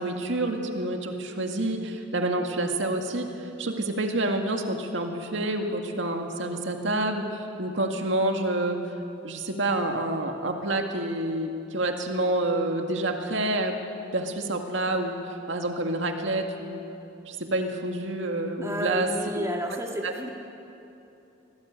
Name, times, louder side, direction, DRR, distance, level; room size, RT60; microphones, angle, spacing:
voice 1, 0.0-8.8 9.2-13.8 14.1-16.8 17.3-19.1 19.3-19.5 20.0-20.3, right 2 dB, 75° right, 3 dB, 2.0 m, -28 dB
voice 2, 18.6-20.3, right 1 dB, 15° right, 0 dB, 2.1 m, -31 dB
24.5 x 18.0 x 8.8 m, 2.9 s
head